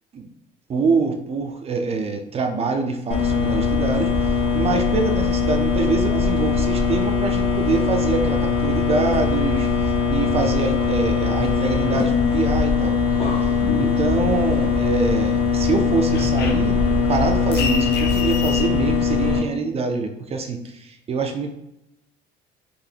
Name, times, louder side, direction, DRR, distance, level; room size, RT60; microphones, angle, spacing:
voice 1, 0.7-13.0 13.4-13.5 13.8-21.5, right 4 dB, 30° right, 5 dB, 0.5 m, -25 dB
sound 1, 3.1-19.4, left 5 dB, 30° left, 0.7 m, -21 dB
sound 2, 13.6-15.0 15.3-18.7, left 4 dB, 65° left, 0.5 m, -29 dB
3.9 x 2.5 x 2.8 m, 0.85 s
cardioid pair, 110°, 19 cm